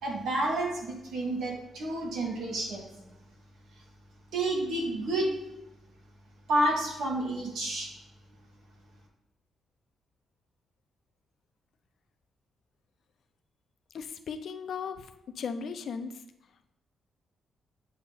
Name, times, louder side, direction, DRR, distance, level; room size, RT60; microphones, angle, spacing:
voice 1, 0.0-2.9 4.3-5.3 6.5-7.9, right 1 dB, 80° right, -1 dB, 1.7 m, -30 dB
voice 2, 13.9-15.1 15.4-16.1, left 6 dB, 55° left, 9 dB, 0.4 m, -36 dB
8.4 x 2.8 x 5.5 m, 0.89 s
wide cardioid pair, 175°, 0 cm